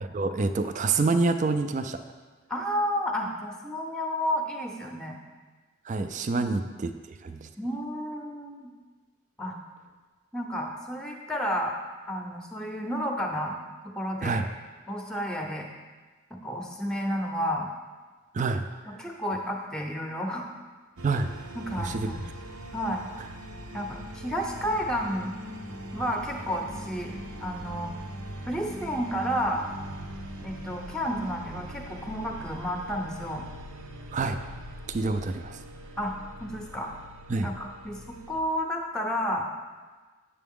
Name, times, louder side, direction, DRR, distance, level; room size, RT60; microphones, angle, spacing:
voice 1, 0.0-2.0 5.9-7.5 14.2-14.5 18.3-18.7 21.0-21.3 21.8-22.1 34.1-34.4 34.9-35.6 37.3-37.5, right 3 dB, 35° right, 9 dB, 0.4 m, -27 dB
voice 2, 2.5-5.2 6.4-6.6 7.6-8.7 9.4-9.6 10.3-11.7 12.1-13.6 13.9-14.4 14.9-15.7 16.4-17.7 18.9-20.5 21.5-22.1 22.7-23.0 23.7-25.3 25.9-27.1 27.4-27.9 28.5-29.7 30.4-33.4 36.0-36.1 36.4-36.9 37.4-38.0 38.3-39.5, equal, 5° left, 2 dB, 0.7 m, -31 dB
sound 1, 21.0-38.4, equal, 90° right, 0.8 m, -41 dB
8.4 x 6.8 x 3.6 m, 1.3 s
head